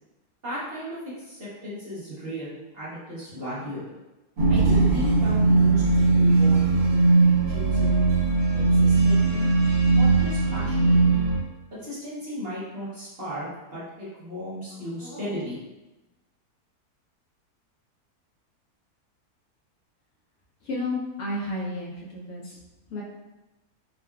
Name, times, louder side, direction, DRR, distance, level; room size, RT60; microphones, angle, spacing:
voice 1, 0.4-3.8 4.5-8.0 8.5-9.4 10.0-11.0 11.7-15.6, equal, 50° right, -9 dB, 0.8 m, -36 dB
sound 1, 4.4-11.4, right 3 dB, 75° right, 1.2 m, -19 dB
voice 2, 20.6-22.5 22.9-23.0, left 2 dB, 65° left, -5 dB, 0.8 m, -31 dB
3.6 x 2.2 x 2.2 m, 1.1 s
omnidirectional pair, 1.6 m